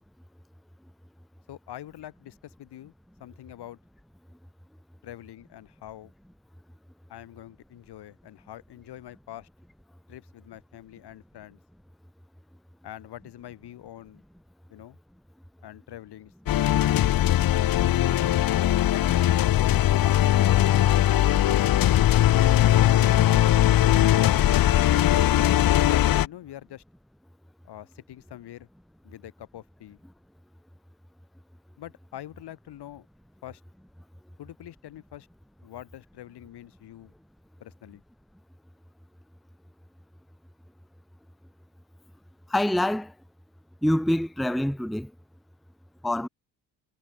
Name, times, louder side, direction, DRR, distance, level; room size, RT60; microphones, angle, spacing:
voice 1, 1.5-2.9 3.2-3.8 5.0-6.1 7.1-9.5 10.1-11.6 12.8-14.2 14.7-15.0 15.6-16.3 17.5-19.3 20.0-21.0 21.4-21.6 22.5-23.4 25.0-26.8 27.6-28.7 29.0-30.0 31.8-33.1 33.4-33.6 34.4-35.3 35.6-37.1 37.6-38.0, left 13 dB, 75° left, 4.1 m, -44 dB
sound 1, 16.5-26.3, left 13 dB, 60° left, 1.0 m, -20 dB
voice 2, 42.5-43.1 43.8-45.1 46.0-46.3, left 1 dB, ahead, 0.8 m, -25 dB
cardioid pair, 150°, 40 cm